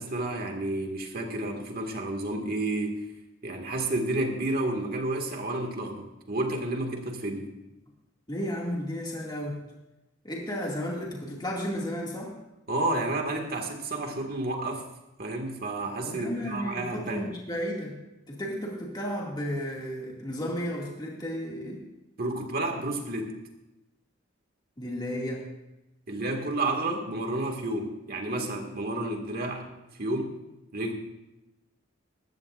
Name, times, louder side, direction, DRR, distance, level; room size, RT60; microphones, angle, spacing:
voice 1, 0.0-3.0 3.4-7.5 12.7-14.9 15.2-17.3 22.2-23.4 26.1-29.7 30.0-30.4 30.7-30.9, right 2 dB, 50° right, 2 dB, 2.1 m, -31 dB
voice 2, 8.3-9.6 10.2-12.3 16.0-18.0 18.3-21.8 24.8-25.4, equal, 20° left, -3 dB, 2.3 m, -33 dB
20.0 x 14.5 x 2.6 m, 0.94 s
head